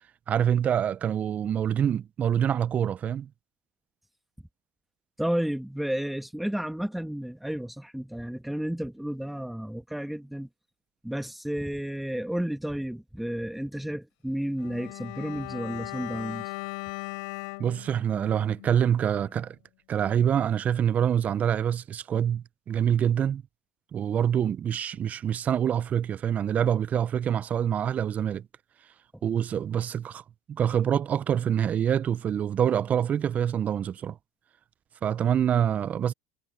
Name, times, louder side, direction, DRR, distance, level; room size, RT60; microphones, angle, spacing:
voice 1, 0.3-3.3 17.6-19.6 19.9-23.4 23.9-28.4 29.2-34.2 35.0-36.1, right 9 dB, 35° right, 0.8 m, -26 dB
voice 2, 5.2-10.5 11.0-16.5, equal, 5° right, 1.8 m, -32 dB
Bowed string instrument, 14.6-19.0 19.3-19.4, left 28 dB, 75° left, 4.6 m, -39 dB
supercardioid pair, 100°, 4 cm